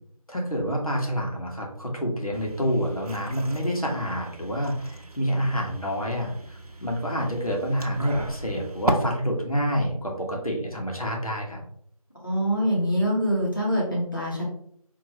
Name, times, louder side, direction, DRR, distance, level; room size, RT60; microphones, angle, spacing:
voice 1, 0.3-11.6, equal, 70° left, 0 dB, 1.5 m, -28 dB
sound 1, 2.3-8.9, right 1 dB, 75° right, 0.8 m, -36 dB
voice 2, 12.2-14.4, equal, 35° left, -5 dB, 1.4 m, -24 dB
4.8 x 3.0 x 2.9 m, 0.66 s
figure-of-eight pair, 180°, 19 cm